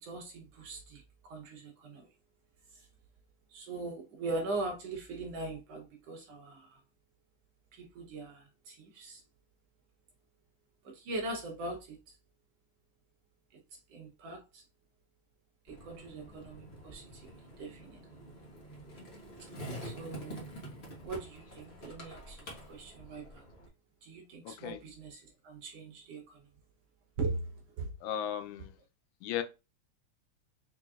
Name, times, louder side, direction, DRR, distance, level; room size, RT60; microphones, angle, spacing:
voice 1, 0.0-2.1 2.7-2.9 3.5-6.8 7.7-9.2 10.8-12.0 13.9-14.6 15.6-17.3 17.6-18.0 19.8-20.5 21.0-22.4 22.7-23.4 24.0-26.4 27.2-27.9, right 3 dB, 65° right, 1.7 m, -41 dB
Skateboard, 15.7-23.7, equal, 55° left, 0.6 m, -47 dB
voice 2, 24.5-24.8 28.0-28.8 29.2-29.4, left 10 dB, 85° left, 2.1 m, -36 dB
4.9 x 3.8 x 2.4 m
omnidirectional pair, 3.4 m